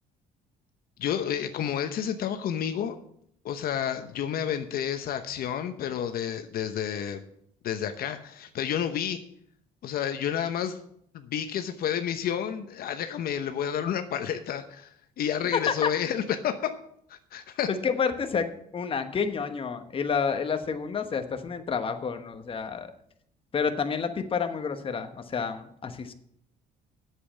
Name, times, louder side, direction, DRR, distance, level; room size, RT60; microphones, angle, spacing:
voice 1, 1.0-3.0 3.4-7.2 7.6-9.2 9.8-10.8 11.1-14.9 15.2-16.7 17.1-17.7, left 9 dB, 60° left, 8 dB, 0.9 m, -30 dB
voice 2, 15.5-15.9 17.7-22.9 23.5-26.1, left 6 dB, 30° left, 7 dB, 1.2 m, -29 dB
8.4 x 7.6 x 8.4 m, 0.69 s
cardioid pair, 110°, 17 cm